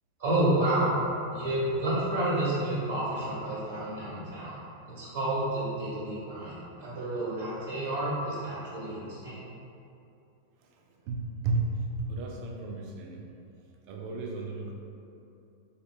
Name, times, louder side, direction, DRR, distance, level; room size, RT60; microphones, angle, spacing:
voice 1, 0.2-1.0 1.3-4.6 4.9-9.4, right 1 dB, 65° right, -10 dB, 1.4 m, -30 dB
voice 2, 10.6-13.2 13.9-14.7, right 3 dB, 45° right, 0 dB, 0.5 m, -33 dB
3.1 x 2.8 x 3.3 m, 2.7 s
figure-of-eight pair, 90°, 0 cm